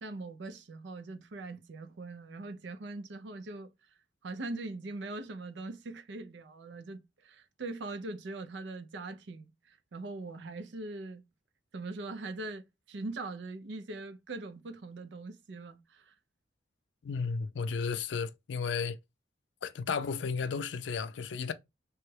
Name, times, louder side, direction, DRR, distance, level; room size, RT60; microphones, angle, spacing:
voice 1, 0.0-3.7 4.2-11.2 11.7-16.1, right 2 dB, 80° right, 0.5 m, -41 dB
voice 2, 17.0-19.0 19.6-21.5, left 5 dB, 80° left, 0.4 m, -33 dB
3.1 x 2.2 x 3.1 m
head